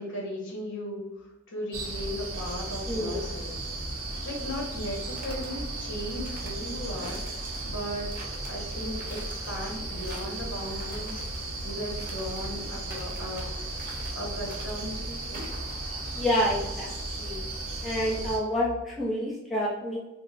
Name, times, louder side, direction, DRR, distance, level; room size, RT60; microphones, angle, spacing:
voice 1, 0.0-3.6 4.2-7.4 7.6-11.2 11.6-15.5, left 1 dB, 60° left, -2 dB, 1.2 m, -37 dB
sound 1, 1.7-18.4, right 2 dB, 85° right, 1.0 m, -35 dB
voice 2, 2.9-3.2 16.1-17.4 17.8-20.0, equal, ahead, -7 dB, 0.7 m, -28 dB
sound 2, 4.8-5.5 6.1-6.6 7.0-7.7 8.1-8.5 8.9-9.5 9.9-10.4 10.8-11.4 12.0-12.5 12.9-13.5 13.8-14.2 14.5-14.9 15.3-15.7, right 2 dB, 40° right, 0.9 m, -46 dB
5.9 x 2.1 x 2.5 m, 0.99 s
head